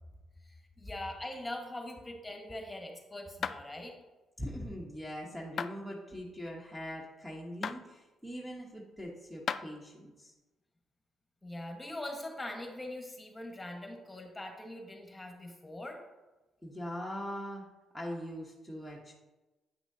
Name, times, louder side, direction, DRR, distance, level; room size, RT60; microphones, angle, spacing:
voice 1, 0.4-3.9 11.4-16.0, left 1 dB, 15° left, 2 dB, 1.3 m, -42 dB
sound 1, 3.4-3.6 5.6-5.8 7.6-7.8 9.5-9.6, left 6 dB, 50° left, 0.3 m, -34 dB
voice 2, 4.4-10.3 16.6-17.6 17.9-19.1, equal, 5° right, -2 dB, 1.0 m, -41 dB
8.4 x 5.9 x 2.7 m, 1.1 s
cardioid pair, 90°, 0 cm